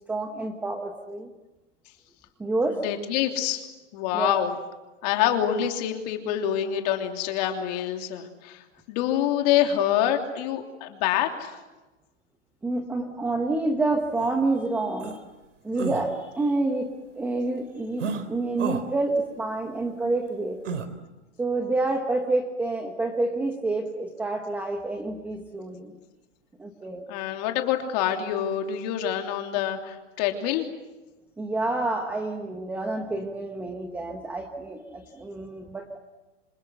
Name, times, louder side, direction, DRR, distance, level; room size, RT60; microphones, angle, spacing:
voice 1, 0.1-1.3 2.4-2.8 4.1-4.4 12.6-15.2 15.6-20.6 21.4-25.9 26.6-27.0 31.4-36.0, right 2 dB, 5° right, 4 dB, 1.0 m, -28 dB
voice 2, 2.8-3.6 3.9-4.5 5.0-11.6 27.1-30.7, left 10 dB, 35° left, 4 dB, 3.1 m, -26 dB
sound 1, 14.2-14.3 15.0-15.2 15.7-16.1 18.0-18.2 18.6-18.8 20.6-20.9, right 5 dB, 75° right, 3.7 m, -31 dB
27.0 x 26.5 x 8.1 m, 1.1 s
hypercardioid pair, 165°, 37 cm